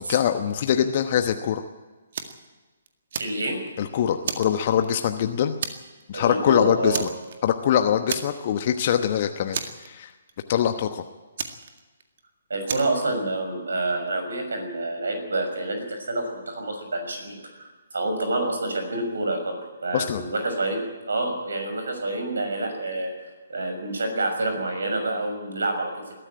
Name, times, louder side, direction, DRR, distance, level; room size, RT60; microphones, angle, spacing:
voice 1, 0.0-1.6 3.8-5.6 6.1-7.1 7.4-10.1 10.5-11.0 19.9-20.2, left 9 dB, 40° left, 7 dB, 1.1 m, -23 dB
Fire, 2.1-2.5 2.9-3.8 4.2-5.2 5.6-6.0 6.3-6.5 6.9-7.6 8.1-8.7 8.9-9.0 9.5-10.3 11.4-12.2 12.7-13.0, right 6 dB, 50° right, 1.9 m, -32 dB
voice 2, 3.2-3.6 6.1-7.0 12.5-17.7 17.9-20.8 21.1-23.1 23.5-26.1, right 2 dB, 65° right, 5 dB, 6.2 m, -28 dB
21.0 x 13.5 x 9.0 m, 1.2 s
figure-of-eight pair, 135°, 0 cm